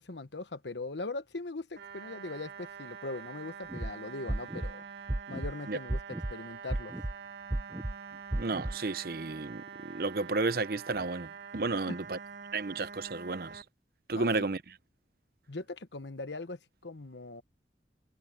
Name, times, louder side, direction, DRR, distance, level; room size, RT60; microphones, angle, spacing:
voice 1, 0.0-4.8 5.3-6.0 6.3-6.9 11.9-12.0 14.1-14.5 15.5-17.4, left 2 dB, 85° left, 1.2 m, -40 dB
sound 1, 1.8-13.6, right 6 dB, 85° right, 1.5 m, -46 dB
sound 2, 3.7-3.9 4.3-4.7 5.1-5.5 5.9-6.3 6.7-7.1 7.5-7.9 8.3-8.7, right 1 dB, 15° right, 0.4 m, -33 dB
voice 2, 8.4-12.2 12.5-13.6 14.1-14.6, right 3 dB, 55° right, 0.7 m, -32 dB
head